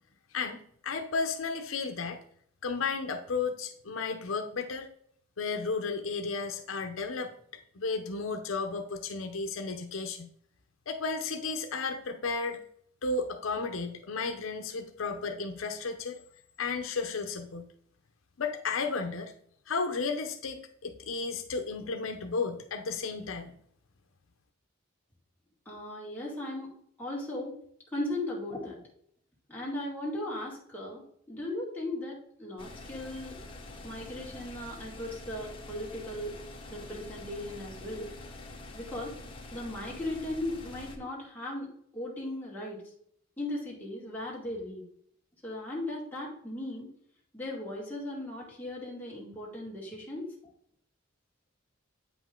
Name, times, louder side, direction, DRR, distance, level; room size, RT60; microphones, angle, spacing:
voice 1, 0.3-2.2 2.6-4.9 5.4-7.3 7.7-10.3 10.9-12.6 13.0-16.2 16.6-17.7 18.4-19.3 19.7-23.5, left 4 dB, 80° left, 6 dB, 0.7 m, -33 dB
voice 2, 25.7-26.7 27.0-27.6 27.9-28.8 29.5-33.4 33.8-36.4 36.7-38.1 38.7-39.1 39.5-42.8 43.4-44.8 45.4-46.9 47.3-50.3, left 1 dB, 10° left, -5 dB, 2.2 m, -37 dB
sound 1, 32.6-41.0, left 2 dB, 25° left, 1.1 m, -46 dB
8.5 x 5.2 x 3.7 m, 0.64 s
head